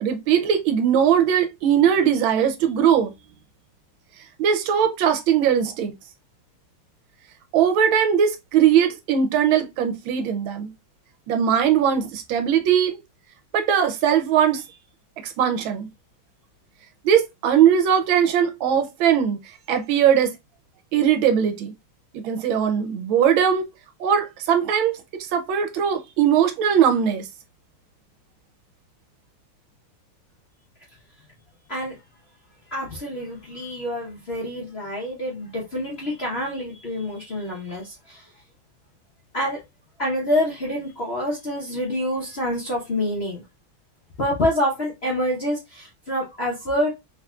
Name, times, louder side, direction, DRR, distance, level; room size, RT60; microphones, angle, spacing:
voice 1, 0.0-3.1 4.4-5.9 7.5-10.7 11.3-13.0 13.5-14.6 15.2-15.9 17.0-19.4 19.7-20.3 20.9-21.7 22.1-23.7 24.0-27.3, right 8 dB, 75° right, 1.4 m, -20 dB
voice 2, 32.7-38.2 39.3-39.6 40.0-43.4 44.2-46.9, left 1 dB, 45° left, 0.8 m, -27 dB
3.7 x 3.2 x 2.3 m
omnidirectional pair, 2.3 m